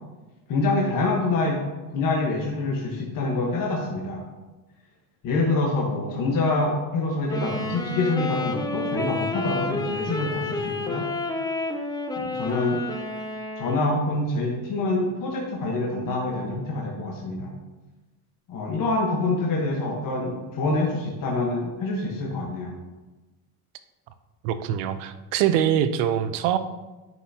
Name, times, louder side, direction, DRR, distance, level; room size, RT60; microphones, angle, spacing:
voice 1, 0.5-1.6 1.9-4.2 5.2-11.0 12.2-12.8 13.6-17.5 18.5-22.8, left 2 dB, 45° left, -1 dB, 1.3 m, -26 dB
Wind instrument woodwind instrument, 7.3-14.1, left 2 dB, 10° left, 0.4 m, -30 dB
voice 2, 24.4-26.6, right 10 dB, 90° right, 11 dB, 0.7 m, -23 dB
9.3 x 6.1 x 2.9 m, 1.1 s
cardioid pair, 135°, 46 cm